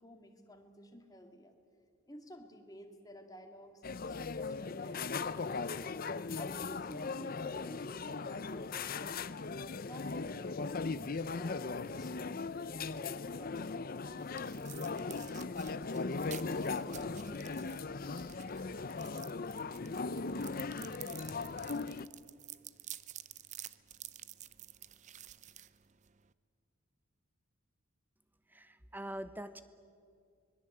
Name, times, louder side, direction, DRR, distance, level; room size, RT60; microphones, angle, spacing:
voice 1, 0.0-1.5 2.1-6.0 6.4-9.4 9.7-12.2 12.6-14.2, equal, 15° left, 4 dB, 2.2 m, -54 dB
sound 1, 3.8-22.1, left 4 dB, 40° left, 0.6 m, -38 dB
sound 2, 13.7-26.3, right 12 dB, 35° right, 0.6 m, -51 dB
voice 2, 28.5-29.6, right 1 dB, 10° right, 11 dB, 1.0 m, -43 dB
25.5 x 21.0 x 8.0 m, 2.3 s
head